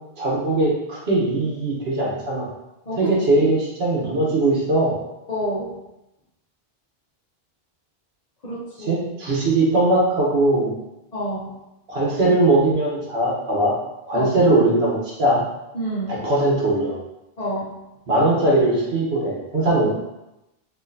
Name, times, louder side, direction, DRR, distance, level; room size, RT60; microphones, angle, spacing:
voice 1, 0.2-2.5 3.0-4.9 8.9-10.7 11.9-13.7 14.0-15.4 16.2-17.0 18.1-19.9, right 2 dB, 80° right, -4 dB, 1.2 m, -20 dB
voice 2, 5.3-5.7 8.4-9.0 11.1-11.6 14.1-14.3 15.7-16.2 17.4-17.7, equal, 45° left, -8 dB, 0.8 m, -28 dB
4.5 x 2.7 x 2.6 m, 0.92 s
omnidirectional pair, 1.0 m